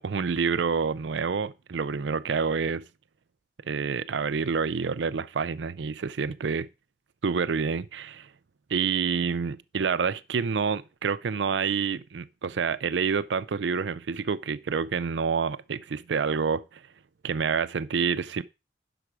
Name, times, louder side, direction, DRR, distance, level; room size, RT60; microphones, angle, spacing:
voice 1, 0.0-2.8 3.7-6.7 7.2-8.3 8.7-16.8 17.2-18.4, right 5 dB, 90° right, 0.5 m, -28 dB
11.0 x 5.9 x 4.8 m
head